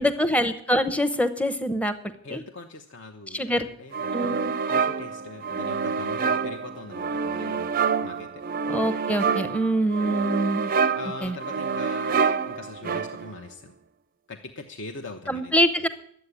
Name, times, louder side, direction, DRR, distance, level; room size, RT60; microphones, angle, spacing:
voice 1, 0.0-2.0 2.3-2.4 3.3-3.7 4.1-4.5 8.7-10.7 11.2-11.4 15.3-15.9, equal, 5° left, 11 dB, 0.8 m, -24 dB
voice 2, 2.2-4.0 4.6-8.4 10.9-13.7 14.3-15.5, left 3 dB, 55° left, 4 dB, 0.9 m, -41 dB
sound 1, 3.9-13.4, right 5 dB, 40° right, 0.4 m, -27 dB
11.5 x 7.9 x 9.7 m, 0.68 s
head